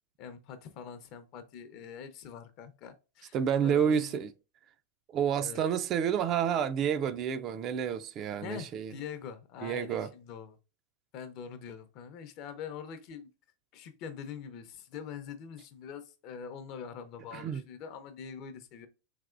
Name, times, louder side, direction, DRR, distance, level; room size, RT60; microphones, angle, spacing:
voice 1, 0.2-3.4 3.6-4.2 5.4-5.6 8.4-10.6 11.1-13.3 13.7-18.9, left 7 dB, 45° left, 0.6 m, -44 dB
voice 2, 3.3-4.3 5.1-8.9 9.6-10.1 17.3-17.6, right 8 dB, 35° right, 0.3 m, -29 dB
3.4 x 2.9 x 2.4 m
hypercardioid pair, 125°, 0 cm